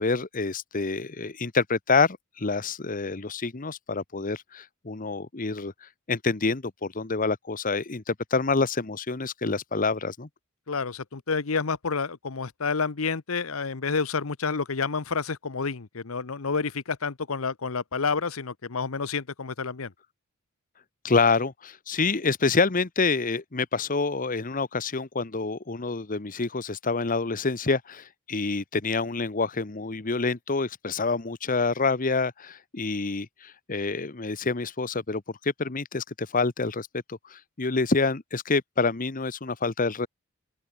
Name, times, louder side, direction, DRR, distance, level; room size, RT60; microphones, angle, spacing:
voice 1, 0.0-10.3 21.0-40.1, left 4 dB, 40° left, 1.1 m, -27 dB
voice 2, 10.7-19.9, left 5 dB, 75° left, 1.0 m, -29 dB
open air
head